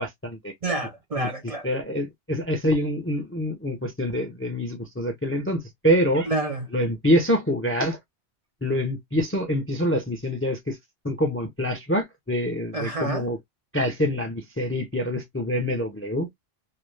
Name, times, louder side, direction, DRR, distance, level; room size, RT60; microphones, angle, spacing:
voice 1, 0.0-0.5 1.2-1.3 1.6-6.3 6.7-8.0 8.6-10.8 11.0-13.4 13.7-16.3, equal, 20° left, 0.4 m, -25 dB
voice 2, 0.6-1.7 6.3-6.7 12.7-13.3, right 2 dB, 40° right, 0.6 m, -28 dB
2.5 x 2.1 x 3.1 m
omnidirectional pair, 1.1 m